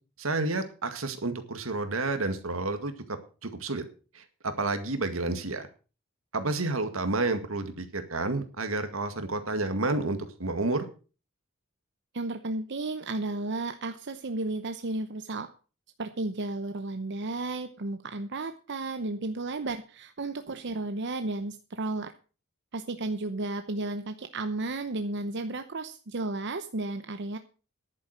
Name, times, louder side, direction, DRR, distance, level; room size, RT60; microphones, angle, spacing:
voice 1, 0.2-3.8 4.1-5.7 6.3-10.9, right 2 dB, 85° right, 9 dB, 2.0 m, -30 dB
voice 2, 12.1-15.5 16.0-22.1 22.7-27.4, right 2 dB, 60° right, 8 dB, 0.8 m, -33 dB
11.0 x 8.7 x 6.5 m, 0.36 s
head